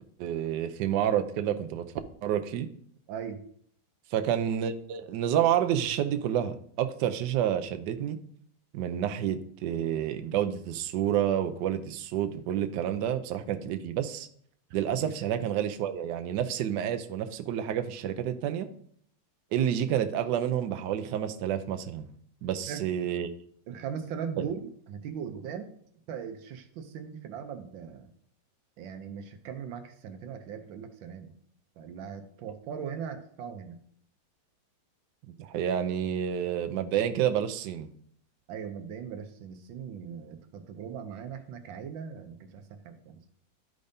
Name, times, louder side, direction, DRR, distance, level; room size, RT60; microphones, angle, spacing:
voice 1, 0.2-1.9 2.2-2.7 4.1-8.2 8.7-14.3 14.7-18.7 19.5-22.1 22.4-23.3 24.4-24.5 35.4-37.9, right 10 dB, 70° right, 7 dB, 1.2 m, -29 dB
voice 2, 3.1-3.4 15.0-15.1 22.7-22.8 23.7-25.7 26.1-28.1 28.8-31.3 31.8-33.8 38.5-43.2, right 7 dB, 85° right, 7 dB, 1.5 m, -39 dB
12.0 x 5.1 x 2.7 m, 0.63 s
omnidirectional pair, 2.0 m